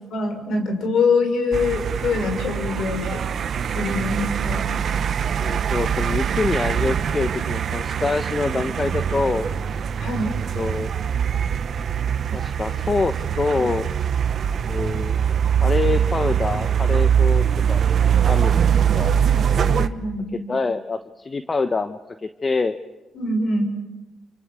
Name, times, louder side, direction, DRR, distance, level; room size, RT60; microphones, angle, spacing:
voice 1, 0.1-3.2 3.7-4.7 10.0-10.4 19.1-19.2 19.8-20.4 23.1-23.6, left 3 dB, 75° left, 6 dB, 6.7 m, -24 dB
sound 1, 1.5-19.9, right 8 dB, 60° right, 1.1 m, -22 dB
voice 2, 5.4-9.5 10.5-10.9 12.3-13.9 14.7-15.1 15.6-17.8 18.2-18.6 18.9-19.2 19.6-19.8 20.5-22.8, left 3 dB, 35° left, 9 dB, 1.2 m, -25 dB
28.5 x 26.5 x 7.7 m, 1.1 s
cardioid pair, 85°, 0 cm